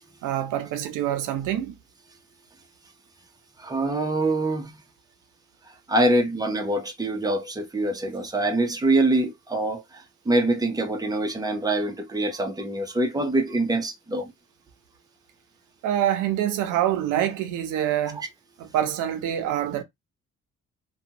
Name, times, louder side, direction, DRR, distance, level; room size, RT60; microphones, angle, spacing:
voice 1, 0.2-1.7 15.8-18.2 18.6-19.8, right 11 dB, 90° right, 0.6 m, -26 dB
voice 2, 3.6-4.7 5.6-14.3, right 2 dB, 10° right, 0.7 m, -25 dB
2.5 x 2.3 x 2.8 m
cardioid pair, 90°, 30 cm